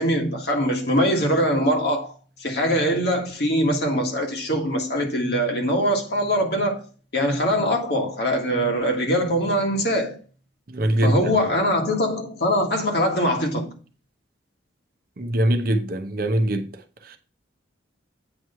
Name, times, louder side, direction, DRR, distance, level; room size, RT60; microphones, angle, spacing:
voice 1, 0.0-2.1 2.4-6.8 7.1-10.2 11.0-13.8, equal, 55° left, 1.7 m, -22 dB
voice 2, 10.7-11.2 15.2-16.6 17.1-17.2, right 1 dB, 50° right, 0.8 m, -22 dB
8.7 x 3.1 x 5.5 m
head